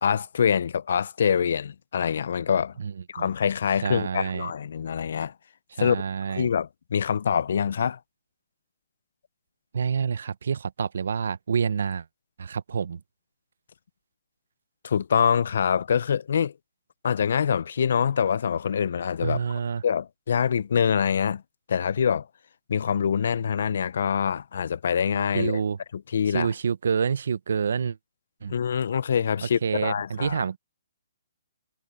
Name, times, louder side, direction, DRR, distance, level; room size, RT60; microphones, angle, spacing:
voice 1, 0.0-2.7 3.1-5.3 5.8-6.0 6.3-8.0 14.8-16.5 17.0-19.4 19.8-21.4 21.7-22.3 22.7-25.6 25.9-26.5 28.5-30.5, left 7 dB, 65° left, 0.7 m, -25 dB
voice 2, 2.8-3.3 3.8-4.5 5.8-6.5 9.7-12.0 12.4-13.0 19.2-19.8 25.3-25.8 26.3-28.0 28.4-28.5 29.6-30.6, right 6 dB, 70° right, 0.9 m, -27 dB
hypercardioid pair, 150°, 0 cm